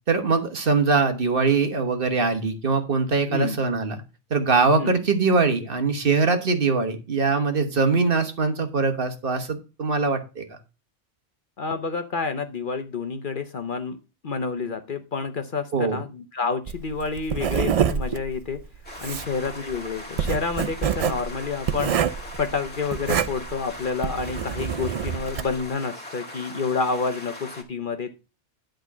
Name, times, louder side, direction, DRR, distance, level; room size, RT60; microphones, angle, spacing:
voice 1, 0.1-4.0 4.3-10.6 15.7-16.0, right 4 dB, 50° right, 6 dB, 1.4 m, -22 dB
voice 2, 11.6-14.0 14.2-18.6 19.0-28.1, left 4 dB, 50° left, 8 dB, 0.9 m, -29 dB
Writing, 16.7-25.6, right 8 dB, 65° right, 0.3 m, -27 dB
sound 1, 18.8-27.6, left 1 dB, 10° left, 2.0 m, -40 dB
11.0 x 3.8 x 5.9 m, 0.30 s
omnidirectional pair, 1.2 m